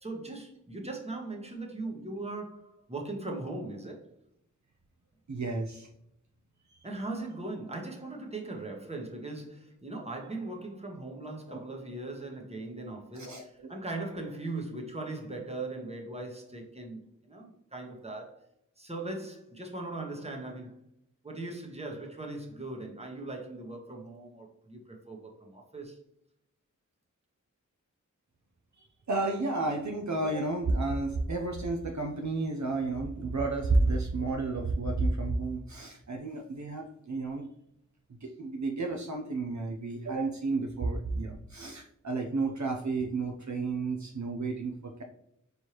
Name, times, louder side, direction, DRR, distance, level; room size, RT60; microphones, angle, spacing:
voice 1, 0.0-4.1 6.8-18.5 18.8-20.8 21.2-26.0, right 2 dB, 20° right, 1.1 m, -39 dB
voice 2, 5.3-5.9 6.7-6.8 11.5-11.6 13.1-13.7 29.1-37.5 38.2-45.0, right 3 dB, 60° right, 0.6 m, -31 dB
4.4 x 3.3 x 2.9 m
wide cardioid pair, 45°, 32 cm